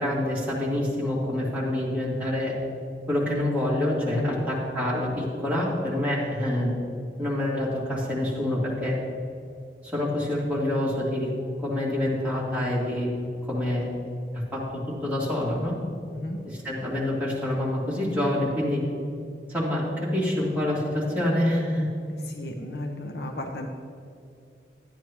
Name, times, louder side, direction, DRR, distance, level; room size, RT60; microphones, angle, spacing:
voice 1, 0.0-2.5 3.1-6.8 7.2-9.0 9.9-11.3 11.6-13.1 13.4-13.9 14.5-14.6 15.0-15.7 16.6-18.8 19.5-21.9, left 1 dB, 10° right, -8 dB, 2.5 m, -26 dB
voice 2, 4.1-4.5 16.1-16.4 22.1-23.7, left 1 dB, 70° left, 3 dB, 0.7 m, -34 dB
12.5 x 9.6 x 3.1 m, 2.6 s
head